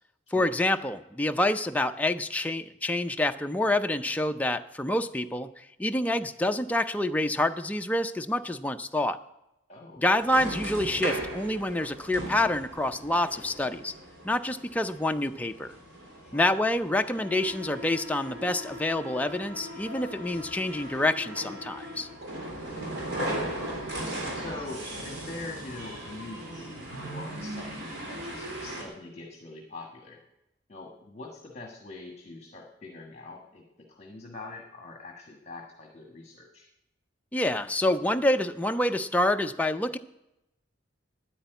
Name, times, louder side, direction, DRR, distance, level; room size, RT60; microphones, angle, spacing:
voice 1, 0.3-9.2 10.0-13.9 14.2-15.7 16.3-22.1 37.3-40.0, left 1 dB, 10° left, 7 dB, 0.4 m, -27 dB
voice 2, 9.7-10.0 16.2-16.4 22.6-23.3 24.3-30.2 30.7-36.7, left 2 dB, 35° left, 1 dB, 1.3 m, -43 dB
sound 1, 10.2-28.8, right 1 dB, 60° right, 3.4 m, -38 dB
9.6 x 8.5 x 9.1 m, 0.89 s
head